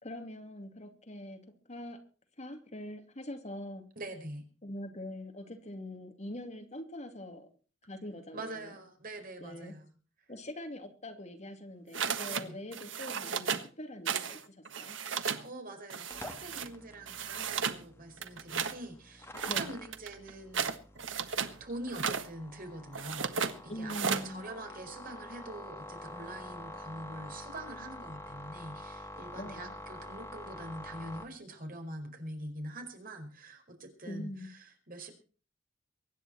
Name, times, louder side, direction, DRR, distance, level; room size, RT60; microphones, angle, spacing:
voice 1, 0.0-1.4 1.7-2.0 2.4-3.8 4.6-7.5 7.8-8.7 9.4-9.7 10.3-15.0 19.5-19.7 23.7-24.4 29.4-29.7 34.1-34.5, left 1 dB, 35° left, 5 dB, 2.7 m, -43 dB
voice 2, 3.9-4.5 8.3-9.9 12.2-12.6 15.4-20.7 21.6-35.1, right 1 dB, 45° right, 5 dB, 5.0 m, -44 dB
sound 1, 11.9-12.4 12.7-13.7 14.0-14.4 14.6-15.4 15.9-16.7 17.1-17.8 18.2-18.8 19.3-21.5 21.9-22.3 22.9-23.5 23.9-24.3, right 6 dB, 70° right, 1.5 m, -34 dB
sound 2, 16.1-31.2, left 1 dB, 15° left, 2.6 m, -47 dB
24.0 x 10.5 x 4.3 m, 0.37 s
head